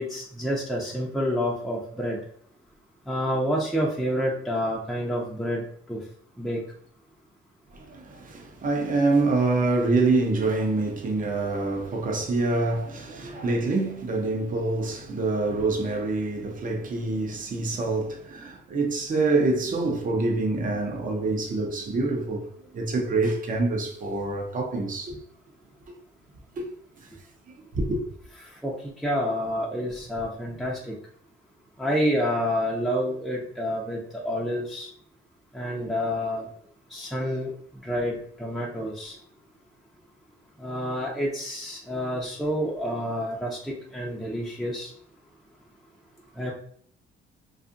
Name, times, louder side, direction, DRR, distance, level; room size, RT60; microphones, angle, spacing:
voice 1, 0.0-2.2 3.1-6.0 6.4-6.6 28.6-28.7 29.0-30.9 31.8-34.9 35.5-36.5 36.9-37.5 37.8-39.2 40.6-44.9 46.4-46.5, equal, ahead, 0.6 m, -28 dB
voice 2, 7.7-22.5 22.7-25.2 26.5-26.7 27.7-28.0, right 3 dB, 45° right, 0.7 m, -26 dB
2.6 x 2.4 x 2.5 m
cardioid pair, 90°, 20 cm